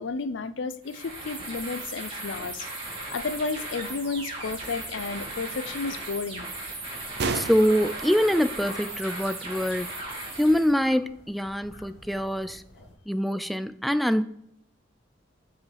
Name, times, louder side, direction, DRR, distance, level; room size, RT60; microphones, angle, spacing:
voice 1, 0.0-2.7 3.1-6.5, left 4 dB, 90° left, 13 dB, 0.5 m, -32 dB
sound 1, 0.8-10.7, right 2 dB, 30° right, 2.3 m, -37 dB
sound 2, 1.0-13.0, left 2 dB, 60° left, 1.6 m, -50 dB
sound 3, 3.5-9.7, right 4 dB, 65° right, 0.6 m, -38 dB
voice 2, 7.3-9.9 10.4-12.6 13.1-14.2, equal, ahead, 11 dB, 0.3 m, -24 dB
7.8 x 4.8 x 3.4 m, 0.75 s
head